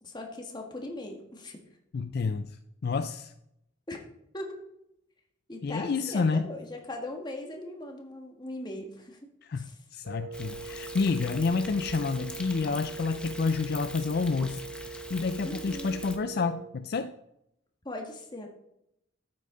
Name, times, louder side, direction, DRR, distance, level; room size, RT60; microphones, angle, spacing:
voice 1, 0.0-1.6 3.9-4.0 4.3-4.6 5.5-9.2 9.6-9.8 15.4-16.0 17.8-18.5, left 1 dB, 20° left, 2 dB, 1.6 m, -39 dB
voice 2, 1.9-2.6 2.8-3.3 5.6-6.5 9.4-17.1, left 4 dB, 50° left, 10 dB, 0.4 m, -29 dB
Wind instrument woodwind instrument, 10.0-16.8, right 4 dB, 75° right, 1.1 m, -42 dB
Thunder, 10.3-16.2, left 1 dB, 5° left, 0.9 m, -43 dB
12.5 x 8.7 x 3.8 m, 0.81 s
head